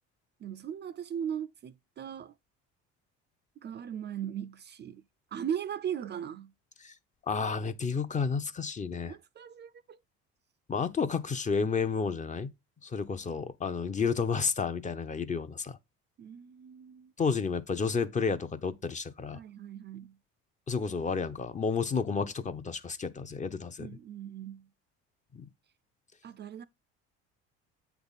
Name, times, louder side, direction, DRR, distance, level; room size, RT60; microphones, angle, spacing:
voice 1, 0.4-2.3 3.6-5.0 5.3-6.5 9.1-10.0 16.2-17.1 19.3-20.2 23.8-24.7 26.2-26.6, right 9 dB, 35° right, 0.4 m, -38 dB
voice 2, 7.3-9.2 10.7-12.5 12.8-15.8 17.2-19.4 20.7-23.9 25.3-25.4, left 5 dB, 25° left, 0.6 m, -31 dB
8.0 x 3.5 x 4.0 m
supercardioid pair, 100°, 29 cm